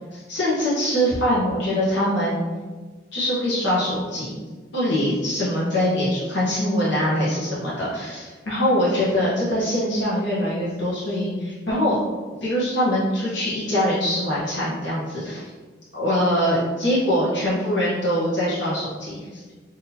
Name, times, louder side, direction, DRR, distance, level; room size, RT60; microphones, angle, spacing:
voice 1, 0.1-2.5 3.1-4.4 4.7-12.0 12.4-15.4 15.9-19.4, equal, 65° left, -8 dB, 1.0 m, -23 dB
3.9 x 2.7 x 2.8 m, 1.3 s
head